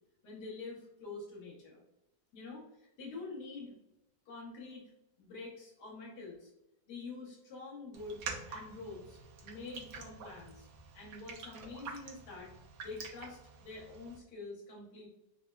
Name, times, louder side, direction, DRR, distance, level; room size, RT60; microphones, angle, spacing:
voice 1, 0.2-1.8 2.3-3.7 4.3-4.9 5.2-6.5 6.9-10.7 10.9-12.5 12.8-15.1, left 3 dB, 70° left, -3 dB, 1.5 m, -46 dB
Raindrop, 7.9-14.2, right 5 dB, 80° right, 1.2 m, -47 dB
4.1 x 2.0 x 2.2 m, 0.87 s
omnidirectional pair, 1.8 m